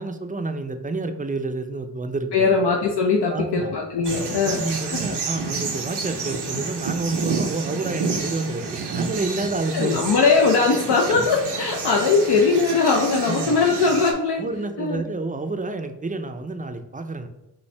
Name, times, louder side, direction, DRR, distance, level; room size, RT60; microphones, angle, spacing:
voice 1, 0.0-2.5 3.3-3.7 4.4-10.1 13.3-13.6 14.4-17.3, right 3 dB, 20° right, 7 dB, 0.4 m, -29 dB
voice 2, 2.3-4.6 4.9-5.2 9.7-14.4 14.8-15.0, left 4 dB, 80° left, 1 dB, 0.6 m, -20 dB
sound 1, 4.0-14.1, right 4 dB, 85° right, 0.7 m, -30 dB
5.5 x 2.7 x 3.2 m, 0.93 s
wide cardioid pair, 60°, 40 cm